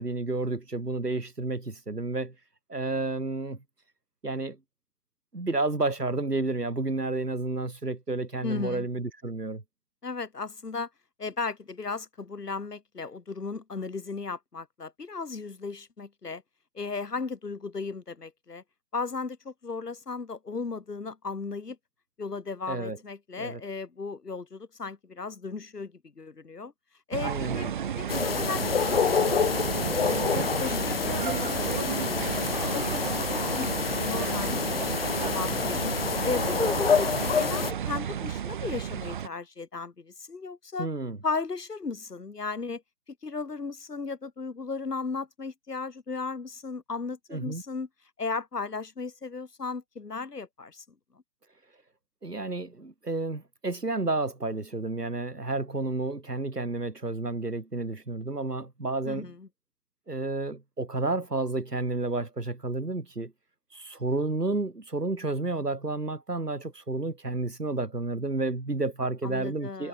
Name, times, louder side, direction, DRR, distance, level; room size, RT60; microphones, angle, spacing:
voice 1, 0.0-2.3 2.7-3.6 4.2-4.6 5.3-9.6 22.7-23.0 23.4-23.6 27.2-27.7 40.8-41.2 47.3-47.6 52.2-59.3 60.1-63.3 63.7-69.9, right 2 dB, 85° right, 3.4 m, -31 dB
voice 2, 8.4-8.9 10.0-10.9 11.2-16.4 16.7-18.6 18.9-21.8 22.2-26.7 27.1-29.5 30.2-32.1 32.5-35.9 36.2-37.1 37.4-40.9 41.2-42.8 43.2-47.9 48.2-50.8 59.0-59.5 69.2-69.9, left 4 dB, 85° left, 1.3 m, -35 dB
sound 1, 27.1-39.3, right 9 dB, 30° right, 0.8 m, -32 dB
sound 2, 28.1-37.7, left 7 dB, 40° left, 0.5 m, -28 dB
figure-of-eight pair, 135°, 46 cm